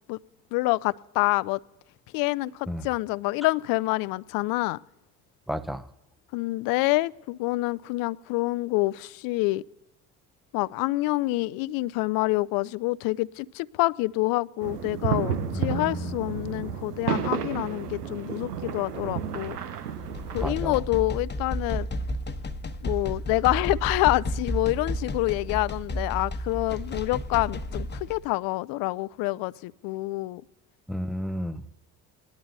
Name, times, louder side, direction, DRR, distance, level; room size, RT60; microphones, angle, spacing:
voice 1, 0.5-1.6 2.1-4.8 6.3-9.6 10.5-19.6 20.3-21.9 22.8-30.4, left 20 dB, 50° left, 21 dB, 0.4 m, -27 dB
voice 2, 5.5-5.9 15.5-16.2 20.4-20.8 30.9-31.9, equal, ahead, 12 dB, 0.5 m, -32 dB
sound 1, 14.6-20.5, right 8 dB, 85° right, 0.8 m, -31 dB
sound 2, 20.0-28.2, equal, 25° left, 1.0 m, -32 dB
19.5 x 11.0 x 2.7 m, 0.87 s
hypercardioid pair, 55°, 45 cm